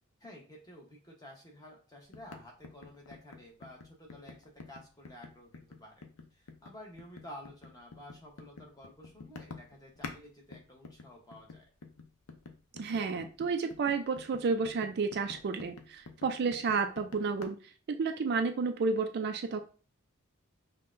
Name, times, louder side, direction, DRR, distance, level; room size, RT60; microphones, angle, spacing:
voice 1, 0.2-6.1 6.3-11.6, left 1 dB, 20° left, -1 dB, 0.9 m, -52 dB
sound 1, 2.1-10.2 10.5-17.5, left 4 dB, 75° left, 0.6 m, -48 dB
voice 2, 12.8-17.6 17.9-19.7, right 4 dB, 50° right, 6 dB, 0.4 m, -31 dB
5.3 x 2.2 x 2.5 m, 0.37 s
head